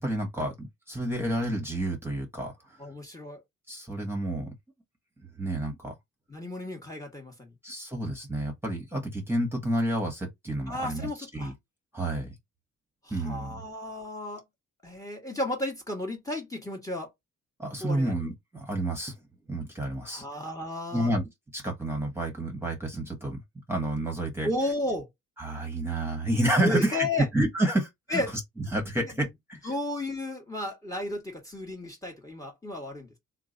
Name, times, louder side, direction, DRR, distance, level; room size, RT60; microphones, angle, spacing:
voice 1, 0.0-2.8 3.7-4.5 5.4-5.9 7.6-11.5 11.9-12.4 13.1-13.6 17.6-19.2 19.5-20.2 20.9-23.4 23.7-24.5 25.4-27.1 27.3-28.2 28.6-29.7, right 1 dB, 10° right, 1.3 m, -30 dB
voice 2, 2.8-3.4 6.3-7.5 10.7-11.5 13.0-14.4 14.8-17.1 17.8-18.2 20.1-21.1 24.4-25.1 26.6-27.3 28.1-28.3 29.6-33.1, left 1 dB, 10° left, 1.3 m, -33 dB
2.9 x 2.4 x 3.8 m
cardioid pair, 90°, 30 cm